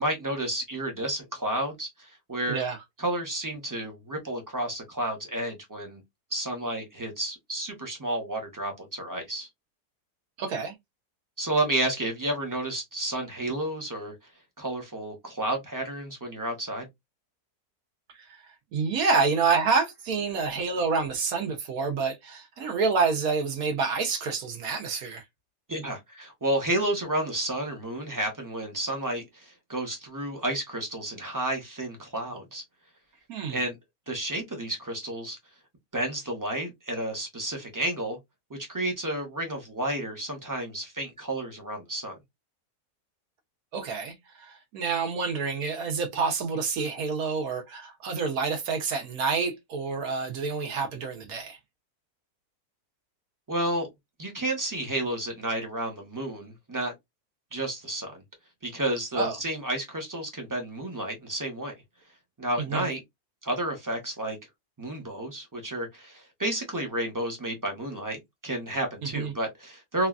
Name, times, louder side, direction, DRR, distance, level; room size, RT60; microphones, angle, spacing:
voice 1, 0.0-2.6 3.0-6.0 6.3-9.5 11.4-14.1 14.6-16.9 25.7-32.6 33.5-33.8 34.1-35.4 35.9-38.2 38.5-42.1 53.5-53.9 54.2-56.9 57.5-58.2 58.6-61.7 62.4-63.0 63.4-64.4 64.8-70.1, right 1 dB, 20° right, 0.6 m, -31 dB
voice 2, 10.4-10.7 18.7-25.2 33.3-33.6 43.7-51.6 59.1-59.4 62.6-62.9 69.1-69.3, right 5 dB, 70° right, 1.2 m, -28 dB
3.1 x 2.3 x 2.3 m
omnidirectional pair, 1.6 m